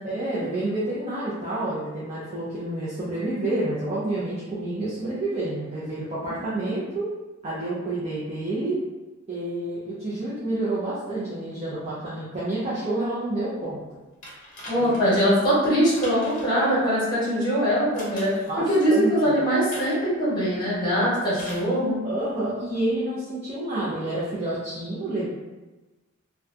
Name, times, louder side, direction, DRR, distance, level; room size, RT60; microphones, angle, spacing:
voice 1, 0.0-7.1 7.4-8.8 9.3-13.8 14.8-14.9 18.5-19.1 22.0-25.3, right 2 dB, 30° right, -9 dB, 0.5 m, -29 dB
sound 1, 14.2-15.2 16.0-16.7 17.9-18.5 19.7-20.1 21.3-21.7 22.8-22.9, equal, 40° left, 0.7 m, -41 dB
voice 2, 14.7-22.0, equal, 20° left, -8 dB, 1.0 m, -22 dB
2.7 x 2.2 x 2.4 m, 1.1 s
head